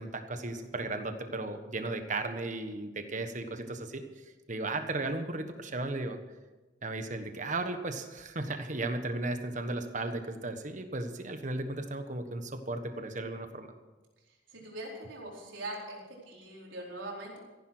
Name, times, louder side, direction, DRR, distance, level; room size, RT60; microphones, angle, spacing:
voice 1, 0.0-4.0 4.5-6.2 6.8-13.7, right 2 dB, 40° right, 7 dB, 1.4 m, -35 dB
voice 2, 14.5-16.0 16.2-17.4, right 1 dB, 80° right, -2 dB, 4.3 m, -41 dB
15.0 x 11.0 x 6.2 m, 1.2 s
head